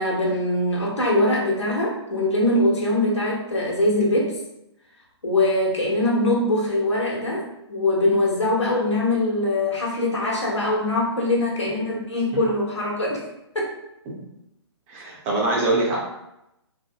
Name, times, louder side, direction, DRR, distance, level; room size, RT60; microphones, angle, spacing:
voice 1, 0.0-4.4 5.2-13.2 13.5-13.7, left 1 dB, 85° left, -4 dB, 1.1 m, -22 dB
voice 2, 11.6-12.0 12.3-12.4 14.1-14.2 14.9-16.0, right 2 dB, 25° right, -4 dB, 0.6 m, -25 dB
3.3 x 2.1 x 2.2 m, 0.86 s
figure-of-eight pair, 135°, 15 cm